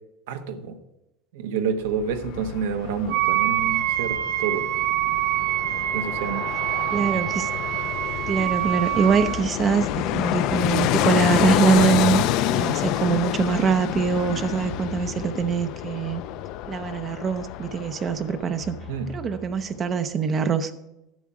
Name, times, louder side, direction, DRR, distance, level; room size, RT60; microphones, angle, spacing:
voice 1, 0.3-0.8 1.3-4.7 5.9-6.4 6.9-7.1 18.9-19.1, right 6 dB, 90° right, 7 dB, 1.2 m, -29 dB
Fixed-wing aircraft airplane, 1.9-18.8 19.1-19.2, left 13 dB, 55° left, 0.5 m, -28 dB
Wind instrument woodwind instrument, 3.1-9.4, right 15 dB, 75° right, 0.7 m, -25 dB
voice 2, 6.9-7.5 8.3-12.2 12.5-16.2 16.7-18.8 19.1-20.7, right 6 dB, 30° right, 9 dB, 0.6 m, -23 dB
sound 1, 18.6-19.9, equal, 70° left, 0.9 m, -43 dB
11.0 x 7.4 x 4.8 m, 0.90 s
supercardioid pair, 145°, 0 cm